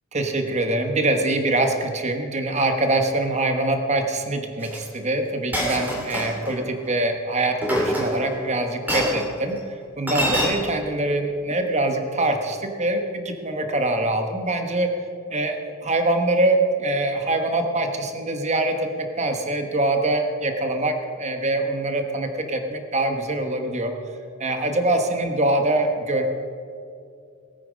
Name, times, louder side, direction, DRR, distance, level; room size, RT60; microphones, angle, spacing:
voice 1, 0.1-9.6 10.0-14.9 15.3-23.9 24.4-26.2, right 2 dB, 30° right, 5 dB, 1.2 m, -24 dB
Chink clink, 4.6-4.8 5.5-6.5 7.6-8.4 8.9-9.2 10.1-10.5, equal, 10° right, 2.4 m, -25 dB
19.5 x 9.0 x 5.3 m, 2.4 s
head